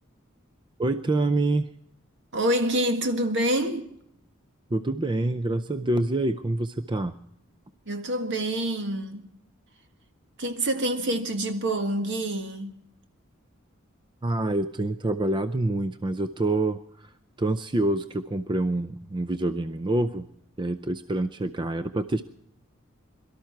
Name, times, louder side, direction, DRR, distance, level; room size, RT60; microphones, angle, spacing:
voice 1, 0.8-1.7 4.7-7.1 14.2-17.1 17.4-20.3 20.6-22.2, right 2 dB, 20° right, 0.5 m, -26 dB
voice 2, 2.3-3.9 7.9-9.3 10.4-12.7, right 1 dB, 60° right, 1.7 m, -26 dB
22.5 x 13.0 x 4.5 m
head